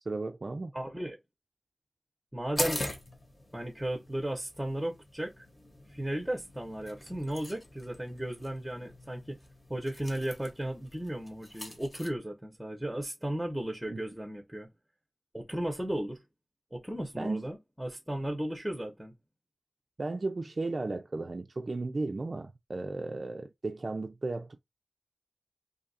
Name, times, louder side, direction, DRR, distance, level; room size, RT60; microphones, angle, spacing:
voice 1, 0.1-0.7 13.9-14.0 17.2-17.5 20.0-24.6, right 3 dB, 50° right, 0.3 m, -35 dB
voice 2, 0.7-1.2 2.3-2.8 3.5-5.5 5.9-9.4 9.7-14.7 15.3-16.2 16.7-19.1, right 1 dB, 5° right, 0.8 m, -35 dB
sound 1, 2.6-12.1, left 1 dB, 35° left, 1.2 m, -42 dB
2.7 x 2.4 x 4.0 m
wide cardioid pair, 90°, 0 cm